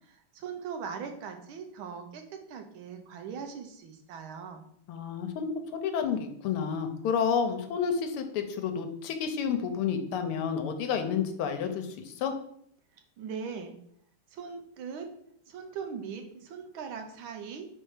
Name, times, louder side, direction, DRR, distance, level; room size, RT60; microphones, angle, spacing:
voice 1, 0.1-4.6 13.2-13.8 14.3-15.1 15.5-17.7, right 6 dB, 75° right, 5 dB, 1.5 m, -40 dB
voice 2, 4.9-12.3, left 6 dB, 85° left, 6 dB, 1.6 m, -30 dB
4.5 x 4.3 x 4.8 m, 0.69 s
omnidirectional pair, 2.4 m